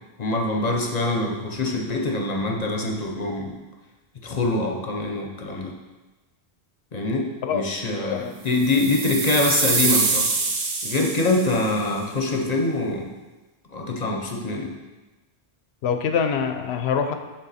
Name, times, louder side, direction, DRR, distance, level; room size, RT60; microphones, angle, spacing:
voice 1, 0.2-3.6 4.2-5.7 6.9-10.3 10.8-13.1 13.7-14.7, left 2 dB, 40° left, 1 dB, 0.8 m, -24 dB
sound 1, 8.5-11.7, right 4 dB, 45° right, 0.7 m, -25 dB
voice 2, 15.8-17.1, left 6 dB, 75° left, 6 dB, 0.8 m, -24 dB
7.9 x 3.7 x 4.1 m, 1.2 s
omnidirectional pair, 1.1 m